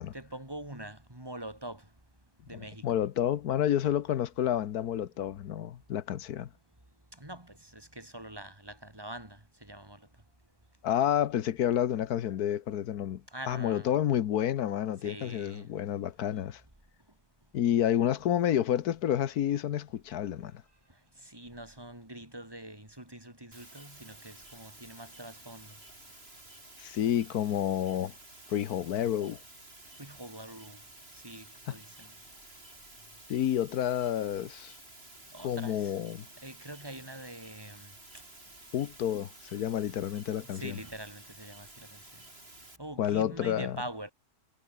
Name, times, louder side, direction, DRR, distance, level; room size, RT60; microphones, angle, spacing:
voice 1, 0.1-1.8 2.5-2.8 7.2-10.0 13.3-13.9 15.0-15.6 21.2-25.8 30.0-30.8 31.2-32.1 35.3-35.9 36.4-37.9 40.5-42.0 42.8-44.1, right 1 dB, 15° right, 3.9 m, -44 dB
voice 2, 2.8-6.5 10.8-16.6 17.5-20.5 26.8-28.1 28.5-29.4 31.7-31.8 33.3-34.8 35.4-36.2 38.7-40.8 43.0-43.8, left 10 dB, 65° left, 1.4 m, -29 dB
sound 1, 23.5-42.8, right 2 dB, 35° right, 6.1 m, -52 dB
omnidirectional pair, 1.8 m